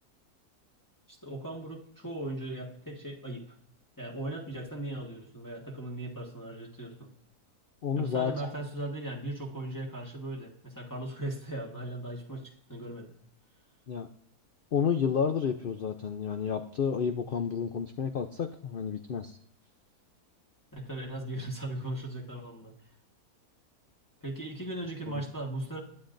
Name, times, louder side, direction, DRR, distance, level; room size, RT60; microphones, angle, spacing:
voice 1, 1.1-3.5 4.0-7.1 7.9-13.1 20.7-22.7 24.2-25.8, right 1 dB, 15° left, -2 dB, 1.5 m, -38 dB
voice 2, 7.8-8.5 13.9-14.1 14.7-19.4 25.1-25.2, left 7 dB, 70° left, 7 dB, 0.5 m, -30 dB
21.0 x 9.5 x 2.6 m, 0.66 s
omnidirectional pair, 1.6 m